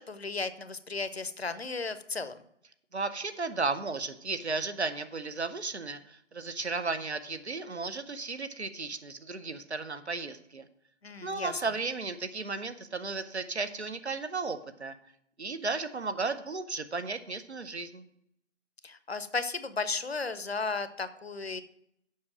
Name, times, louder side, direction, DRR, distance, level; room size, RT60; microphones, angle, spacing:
voice 1, 0.0-2.4 11.0-11.5 18.8-21.6, left 4 dB, 55° left, 13 dB, 0.7 m, -34 dB
voice 2, 2.9-10.7 11.2-14.9 15.4-18.1, right 3 dB, 65° right, 11 dB, 0.9 m, -34 dB
7.6 x 5.7 x 6.0 m, 0.73 s
figure-of-eight pair, 155°, 36 cm